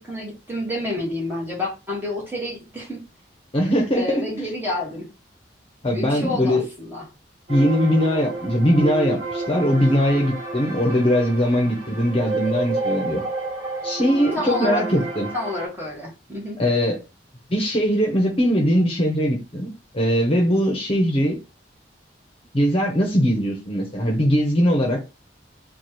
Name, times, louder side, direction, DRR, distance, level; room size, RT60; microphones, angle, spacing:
voice 1, 0.0-3.0 3.9-5.1 5.9-7.0 14.3-14.8 15.3-16.6, left 1 dB, 10° right, 1.3 m, -29 dB
voice 2, 3.5-4.3 5.8-6.7 7.5-13.2 13.8-15.3 16.6-17.0 17.5-21.4 22.5-25.0, equal, 30° left, 0.9 m, -20 dB
sound 1, 7.5-15.7, right 3 dB, 40° right, 1.8 m, -30 dB
3.2 x 2.4 x 4.2 m
head